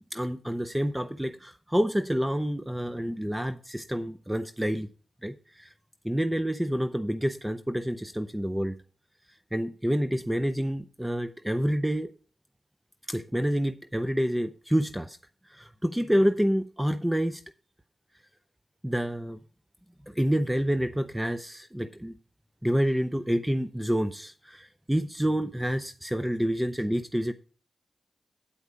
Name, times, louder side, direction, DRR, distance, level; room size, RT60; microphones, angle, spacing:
voice 1, 0.1-4.9 5.2-5.7 6.0-8.7 9.5-12.1 13.1-15.2 15.5-17.4 18.8-19.4 20.1-22.1 22.6-27.3, equal, 10° right, 0.5 m, -28 dB
8.5 x 4.7 x 6.8 m
cardioid pair, 65°, 0 cm